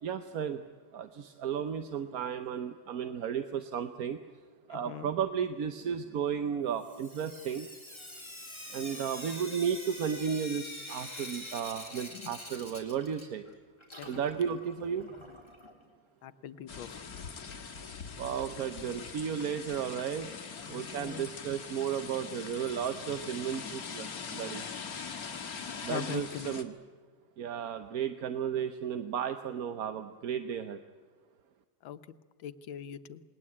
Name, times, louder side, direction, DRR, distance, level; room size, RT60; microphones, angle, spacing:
voice 1, 0.0-0.6 0.9-4.2 4.7-7.7 8.7-13.4 14.0-15.1 18.2-20.3 20.7-24.6 25.8-26.7 27.4-30.8, right 8 dB, 55° right, 9 dB, 1.2 m, -34 dB
voice 2, 4.7-5.1 12.1-12.3 14.0-14.1 16.2-16.9 20.6-21.3 25.9-26.5 31.8-32.0 32.4-33.2, left 9 dB, 85° left, 12 dB, 1.7 m, -41 dB
Sink (filling or washing) / Drip, 6.8-13.5 13.8-15.7 16.9-17.0 17.3-17.4 17.7-17.8 20.7-20.8 21.3-21.4 21.9-22.0 22.6-22.7 23.3-23.4 24.3-24.4, left 1 dB, 15° left, 3.6 m, -45 dB
sound 1, 16.7-26.6, left 6 dB, 50° left, 2.0 m, -42 dB
28.0 x 20.5 x 8.6 m, 1.5 s
omnidirectional pair, 2.1 m